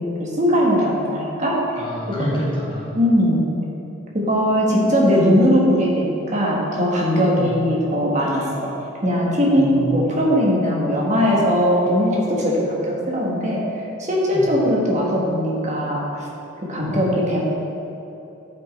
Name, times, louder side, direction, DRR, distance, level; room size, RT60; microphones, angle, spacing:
voice 1, 0.0-1.6 2.1-2.2 2.9-3.5 4.1-8.7 9.0-16.2 16.7-17.4, equal, 35° right, -4 dB, 1.4 m, -20 dB
voice 2, 1.8-2.9 7.3-7.5 9.5-10.0 14.3-14.5 16.8-17.0, equal, 25° left, -6 dB, 1.7 m, -27 dB
12.5 x 5.2 x 4.1 m, 2.9 s
head